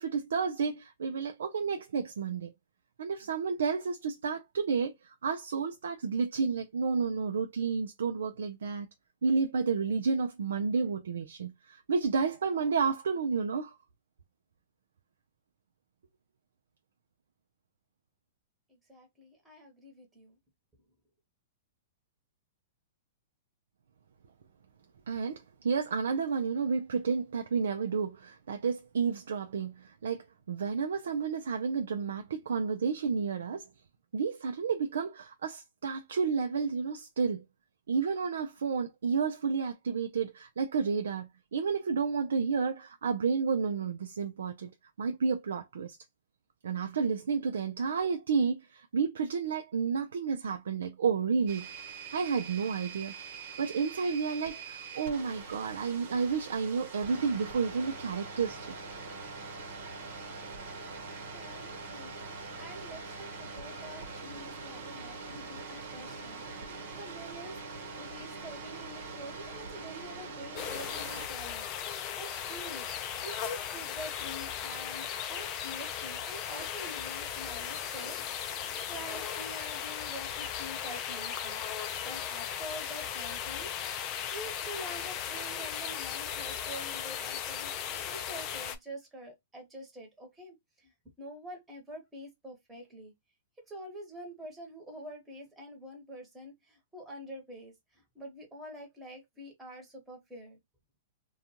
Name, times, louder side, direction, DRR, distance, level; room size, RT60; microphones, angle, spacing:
voice 1, 0.0-2.5 3.0-8.9 9.2-13.8 25.1-33.7 34.1-37.4 37.9-44.7 45.0-46.0 46.6-51.7 52.1-53.1 53.6-58.7, right 5 dB, 85° right, 0.4 m, -31 dB
voice 2, 18.7-20.4 61.3-62.1 62.6-78.2 78.5-83.7 84.3-93.1 93.7-100.6, equal, 10° right, 1.1 m, -46 dB
sound 1, 51.5-71.3, right 4 dB, 60° right, 1.2 m, -43 dB
sound 2, 70.6-88.8, left 9 dB, 35° left, 0.4 m, -37 dB
2.5 x 2.3 x 2.8 m
hypercardioid pair, 140°, 0 cm